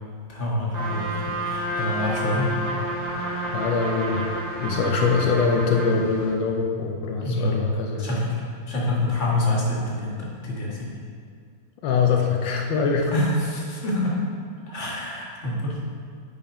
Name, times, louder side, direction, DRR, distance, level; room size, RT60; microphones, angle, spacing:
voice 1, 0.3-2.5 7.2-7.6 8.0-10.9 13.1-14.2 14.7-15.8, left 1 dB, 40° left, -5 dB, 1.8 m, -26 dB
Trumpet, 0.7-6.0, right 1 dB, 30° right, 0.7 m, -30 dB
sound 1, 0.7-6.3, left 3 dB, 55° right, 2.5 m, -42 dB
voice 2, 3.5-4.3 4.6-8.1 11.8-13.1, left 5 dB, 80° left, 1 dB, 1.4 m, -23 dB
9.0 x 5.3 x 5.0 m, 2.2 s
omnidirectional pair, 2.0 m